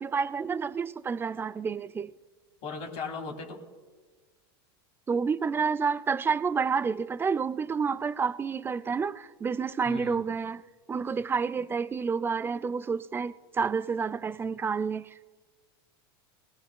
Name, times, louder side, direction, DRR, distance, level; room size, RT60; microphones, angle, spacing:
voice 1, 0.0-2.1 5.1-10.6 10.9-15.2, right 5 dB, 15° right, 0.4 m, -29 dB
voice 2, 2.6-3.6 9.8-10.2, left 4 dB, 55° left, 2.1 m, -37 dB
20.5 x 18.5 x 2.2 m
supercardioid pair, 105°, 13 cm